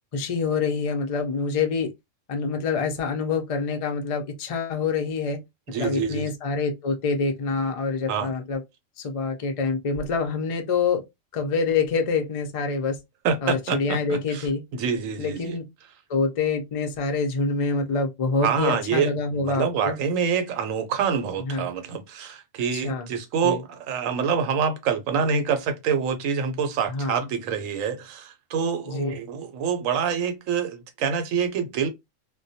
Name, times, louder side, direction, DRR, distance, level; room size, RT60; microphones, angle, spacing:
voice 1, 0.1-1.9 2.3-5.4 5.8-8.6 9.0-11.0 11.3-13.0 13.4-14.6 15.2-15.6 16.1-20.0 21.4-21.7 22.7-23.1 23.4-23.6 26.9-27.2 28.9-29.2, left 4 dB, 65° left, 0.3 m, -26 dB
voice 2, 5.7-6.3 8.1-8.3 13.2-14.5 14.7-15.6 18.4-31.9, right 6 dB, 85° right, 1.0 m, -26 dB
2.2 x 2.1 x 2.6 m
omnidirectional pair, 1.3 m